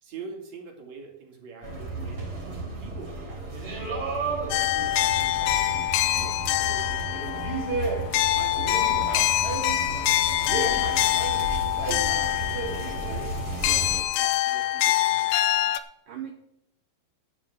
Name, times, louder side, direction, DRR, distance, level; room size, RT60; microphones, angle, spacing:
voice 1, 0.0-3.7 4.4-7.5 8.4-10.7 11.9-13.4 14.2-15.5, right 4 dB, 50° right, 2 dB, 2.6 m, -45 dB
sound 1, 1.6-14.0, right 2 dB, 25° right, 3.3 m, -32 dB
voice 2, 4.2-4.5 13.6-13.9 16.1-16.3, right 10 dB, 75° right, 3 dB, 1.9 m, -40 dB
sound 2, 4.5-15.8, left 14 dB, 90° left, 3.2 m, -25 dB
11.0 x 7.2 x 7.7 m, 0.78 s
omnidirectional pair, 5.3 m